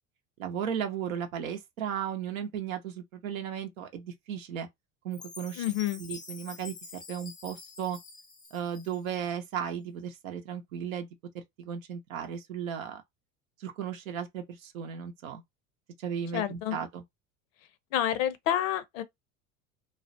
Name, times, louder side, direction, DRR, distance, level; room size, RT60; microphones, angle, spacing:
voice 1, 0.4-4.7 5.0-5.6 6.0-8.0 8.5-11.1 11.6-13.0 13.6-15.4 16.0-17.0, right 8 dB, 80° right, 0.6 m, -35 dB
Chime, 5.1-9.3, left 4 dB, 10° left, 0.3 m, -47 dB
voice 2, 5.6-6.0 16.3-16.8 17.9-19.0, left 11 dB, 70° left, 0.6 m, -29 dB
2.4 x 2.0 x 2.5 m
hypercardioid pair, 75°, 40 cm